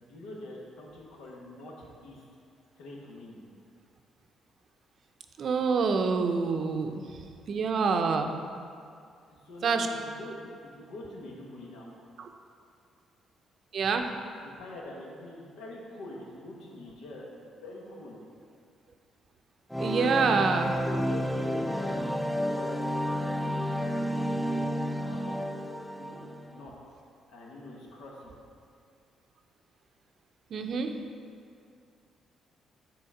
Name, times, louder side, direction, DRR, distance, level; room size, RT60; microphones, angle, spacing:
voice 1, 0.0-1.7 2.0-2.2 2.8-3.4 9.3-11.9 14.4-17.3 17.6-18.2 20.8-25.4 25.9-26.2 26.5-26.7 27.3-28.3, left 1 dB, 90° left, -2 dB, 1.2 m, -44 dB
voice 2, 5.4-6.9 7.5-8.3 9.6-9.9 12.2-12.3 13.7-14.0 19.8-20.8 30.5-30.9, right 5 dB, 60° right, 5 dB, 0.5 m, -26 dB
sound 1, 19.7-26.6, equal, 5° left, 0.3 m, -31 dB
6.9 x 3.9 x 4.9 m, 2.4 s
cardioid pair, 90°, 0 cm